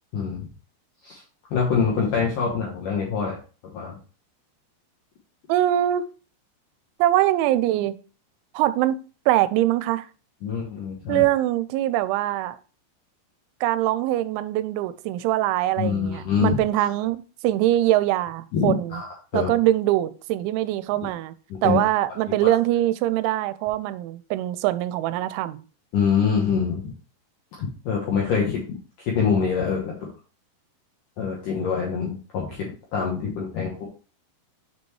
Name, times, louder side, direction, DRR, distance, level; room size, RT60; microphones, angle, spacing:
voice 1, 0.1-0.5 1.0-1.2 1.5-3.4 3.7-4.0 10.4-11.2 15.8-16.6 18.5-19.5 21.5-21.8 25.9-26.9 27.6-28.6 29.1-30.0 31.2-33.9, left 6 dB, 70° left, 2.1 m, -25 dB
voice 2, 5.5-6.0 7.0-7.9 8.5-9.0 9.3-10.1 11.1-12.6 13.6-17.2 17.4-19.0 19.3-21.3 21.6-25.6, right 14 dB, 85° right, 2.9 m, -23 dB
6.9 x 5.2 x 3.1 m
omnidirectional pair, 5.4 m